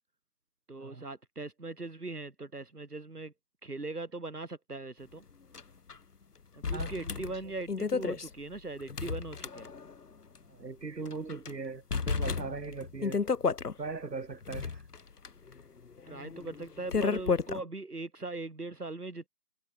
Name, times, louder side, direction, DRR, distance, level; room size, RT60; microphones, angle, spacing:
voice 1, 0.7-3.3 3.6-5.2 6.6-9.7 16.1-19.3, right 3 dB, 65° right, 2.1 m, -40 dB
sound 1, 5.5-5.6 5.9-6.0 6.6-10.0 10.4-10.5 11.1-11.5 11.9-13.7 14.3-17.6, left 5 dB, 70° left, 0.9 m, -33 dB
voice 2, 6.7-7.1 10.5-13.2 13.8-14.8, right 4 dB, 85° right, 1.4 m, -40 dB
figure-of-eight pair, 180°, 49 cm